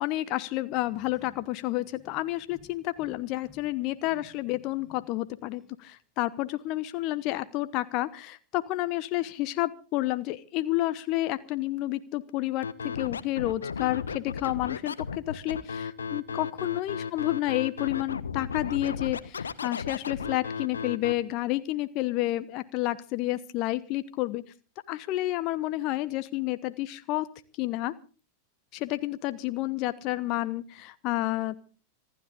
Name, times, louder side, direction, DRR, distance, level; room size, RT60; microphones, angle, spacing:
voice 1, 0.0-24.4 24.9-27.3 27.6-27.9 28.7-31.7, left 17 dB, 40° left, 13 dB, 1.0 m, -30 dB
sound 1, 0.7-5.2 5.5-5.8, left 3 dB, 5° right, 6.6 m, -57 dB
Scratching (performance technique), 12.6-21.1, left 6 dB, 70° left, 1.2 m, -34 dB
26.0 x 12.5 x 3.7 m, 0.38 s
figure-of-eight pair, 90°, 0 cm